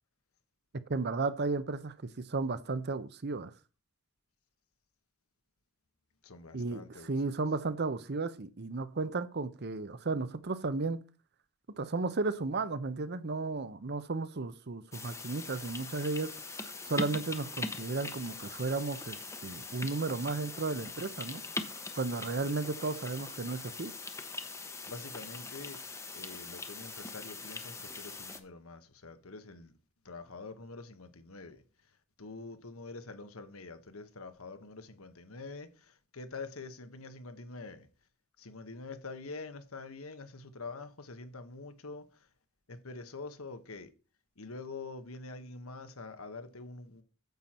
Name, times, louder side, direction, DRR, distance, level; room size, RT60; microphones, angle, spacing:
voice 1, 0.9-3.5 6.5-11.0 11.7-23.9, right 3 dB, 50° right, 0.8 m, -34 dB
voice 2, 6.2-7.1 21.8-22.0 24.9-25.8 26.1-29.7 30.0-31.6 32.2-37.9 38.4-42.3 42.7-43.9 44.4-47.0, left 3 dB, 80° left, 1.3 m, -45 dB
sound 1, 14.9-28.4, left 3 dB, 15° left, 0.9 m, -42 dB
9.3 x 7.7 x 4.3 m
head